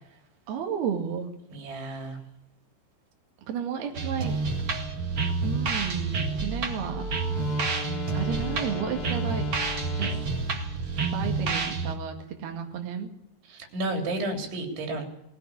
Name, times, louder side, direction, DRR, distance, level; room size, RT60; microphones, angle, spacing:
voice 1, 0.5-1.3 3.5-4.4 5.4-7.1 8.1-9.5 10.0-10.3 11.1-13.1, right 7 dB, 65° right, 3 dB, 4.1 m, -32 dB
voice 2, 1.5-2.2 13.4-15.1, right 1 dB, 90° right, 4 dB, 5.9 m, -32 dB
sound 1, 3.9-12.0, right 4 dB, 45° right, 1.8 m, -29 dB
Wind instrument woodwind instrument, 6.9-10.4, left 6 dB, 60° left, 3.5 m, -38 dB
20.0 x 17.5 x 8.7 m, 0.79 s
omnidirectional pair, 5.2 m